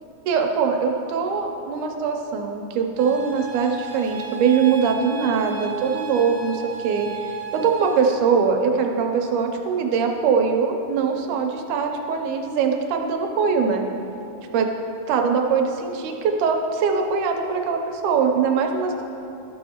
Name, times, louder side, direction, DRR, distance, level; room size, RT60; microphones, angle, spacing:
voice 1, 0.3-7.1 7.5-13.9 14.5-14.7 15.1-19.0, right 6 dB, 80° right, 3 dB, 2.1 m, -22 dB
sound 1, 3.0-8.0, right 7 dB, 65° right, 1.0 m, -35 dB
12.5 x 6.3 x 2.9 m, 3.0 s
omnidirectional pair, 3.6 m